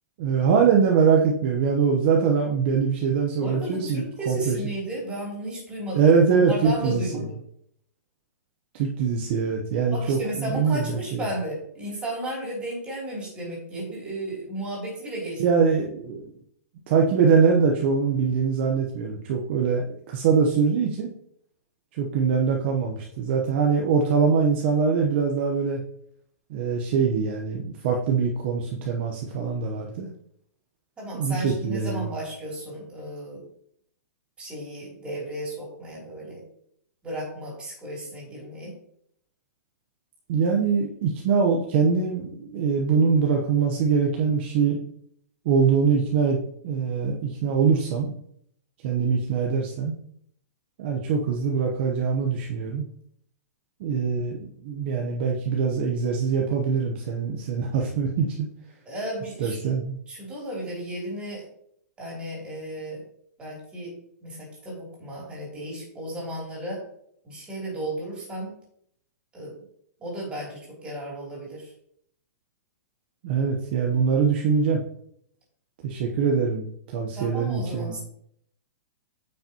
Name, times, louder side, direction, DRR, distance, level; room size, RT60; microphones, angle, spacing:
voice 1, 0.2-4.6 5.9-7.2 8.7-11.2 15.4-16.3 16.9-21.1 21.9-25.8 26.5-30.1 31.1-32.1 40.3-44.8 45.4-46.4 46.6-48.2 48.8-49.9 50.8-52.9 53.8-58.5 59.4-60.0 73.2-74.8 75.8-76.7 76.9-77.9, right 6 dB, 40° right, 0 dB, 0.9 m, -23 dB
voice 2, 3.4-7.4 9.9-15.6 31.0-33.4 34.4-36.4 37.0-38.7 58.8-59.7 60.1-61.5 62.0-63.0 63.4-63.9 64.2-66.8 67.2-68.5 69.3-69.5 70.0-71.7 77.2-78.0, right 1 dB, 10° right, -4 dB, 3.1 m, -34 dB
9.1 x 5.5 x 2.9 m, 0.68 s
hypercardioid pair, 165°, 9 cm